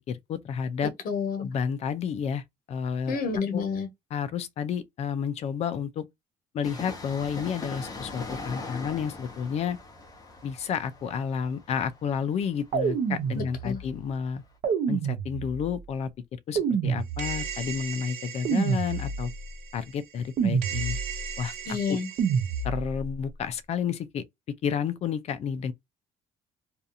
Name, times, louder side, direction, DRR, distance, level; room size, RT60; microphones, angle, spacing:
voice 1, 0.1-0.9 1.4-2.4 2.7-3.2 3.5-3.6 4.1-6.1 6.5-9.8 10.4-14.4 14.9-19.3 19.7-21.0 21.4-21.5 21.9-22.0 22.6-24.2 24.6-25.7, left 7 dB, 45° left, 0.4 m, -31 dB
voice 2, 1.0-1.5 3.1-3.9 13.3-13.8 21.7-22.1, left 5 dB, 65° left, 1.1 m, -29 dB
Train, 6.6-14.1 14.3-14.4, left 3 dB, 25° left, 0.8 m, -41 dB
sound 1, 12.7-13.9 14.6-15.8 16.5-17.7 18.4-19.5 20.4-21.3 22.2-23.1, right 6 dB, 55° right, 0.7 m, -28 dB
sound 2, 17.2-20.3 20.6-22.7, right 9 dB, 85° right, 1.0 m, -38 dB
2.7 x 2.4 x 2.5 m
cardioid pair, 140°, 15 cm